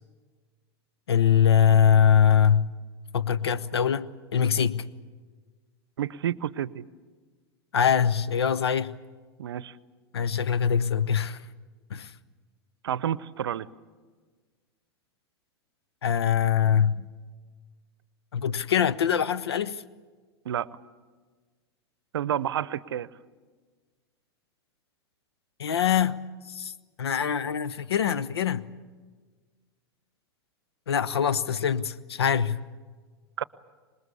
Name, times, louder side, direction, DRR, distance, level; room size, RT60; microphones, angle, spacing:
voice 1, 1.1-2.7 3.1-4.9 7.7-9.0 10.1-11.4 11.9-12.1 16.0-17.1 18.3-19.8 25.6-26.2 26.5-28.7 30.9-32.6, left 8 dB, 80° left, 0.8 m, -23 dB
voice 2, 6.0-6.8 9.4-9.8 12.8-13.7 20.4-20.7 22.1-23.1 33.4-33.5, right 10 dB, 80° right, 0.7 m, -29 dB
26.0 x 20.5 x 8.3 m
hypercardioid pair, 95°, 13 cm